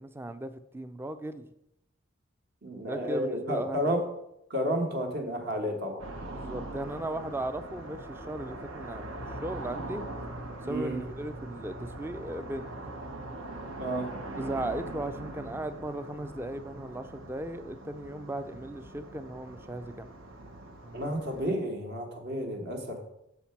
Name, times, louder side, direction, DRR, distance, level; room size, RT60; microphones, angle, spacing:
voice 1, 0.0-1.4 2.8-3.9 6.3-10.0 10.6-12.7 14.3-20.1, right 1 dB, 10° right, 11 dB, 0.3 m, -37 dB
voice 2, 2.6-4.0 4.5-6.1 10.6-11.0 13.8-14.1 20.9-23.0, equal, 55° right, 3 dB, 1.2 m, -31 dB
sound 1, 6.0-21.5, right 2 dB, 80° right, 1.0 m, -42 dB
6.6 x 4.3 x 5.7 m, 0.82 s
head